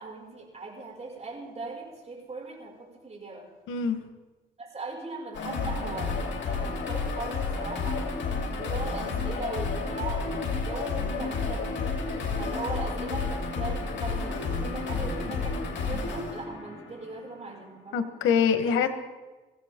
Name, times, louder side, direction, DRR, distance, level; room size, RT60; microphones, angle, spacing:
voice 1, 0.0-3.5 4.6-8.2 8.5-11.7 12.4-18.1, right 3 dB, 35° right, -1 dB, 6.1 m, -39 dB
voice 2, 3.7-4.0 17.9-18.9, left 7 dB, 85° left, 8 dB, 1.4 m, -24 dB
sound 1, 5.3-17.4, left 4 dB, 65° left, 3.2 m, -31 dB
23.0 x 16.0 x 3.8 m, 1.2 s
cardioid pair, 90°, 20 cm